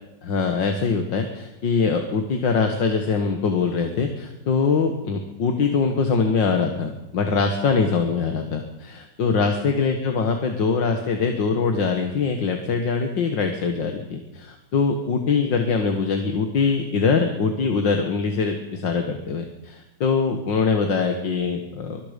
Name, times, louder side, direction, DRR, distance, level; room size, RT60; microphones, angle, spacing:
voice 1, 0.2-22.0, left 5 dB, 80° left, 5 dB, 2.3 m, -23 dB
25.0 x 20.5 x 5.3 m, 0.91 s
omnidirectional pair, 2.0 m